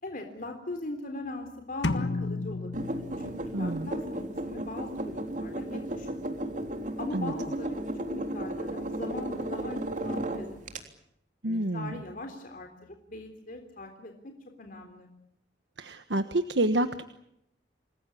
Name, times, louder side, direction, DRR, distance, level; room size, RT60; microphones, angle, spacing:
voice 1, 0.0-6.5 7.0-10.8 11.4-14.3 14.6-15.1, left 2 dB, 50° left, 5 dB, 3.6 m, -41 dB
sound 1, 1.8-3.7, left 2 dB, 90° left, 1.6 m, -32 dB
sound 2, 2.7-10.8, right 1 dB, 45° right, 3.5 m, -34 dB
voice 2, 3.5-3.9 7.1-7.3 11.4-11.9 15.8-17.0, right 1 dB, 85° right, 10 dB, 1.3 m, -28 dB
28.5 x 21.0 x 8.5 m, 0.80 s
head